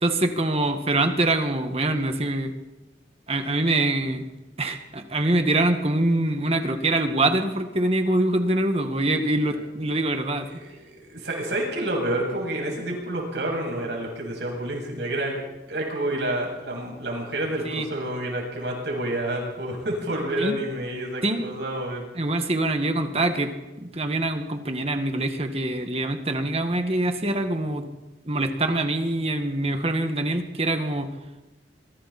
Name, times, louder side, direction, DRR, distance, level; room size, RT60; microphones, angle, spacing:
voice 1, 0.0-2.5 3.3-4.2 4.6-10.5 17.7-17.9 20.4-20.6 21.2-21.4 22.2-23.5 23.8-27.8 28.3-31.1, right 2 dB, 35° right, 6 dB, 1.9 m, -24 dB
voice 2, 10.5-15.4 15.7-22.1, right 1 dB, 75° right, -1 dB, 7.9 m, -29 dB
26.0 x 23.5 x 4.4 m, 1.1 s
head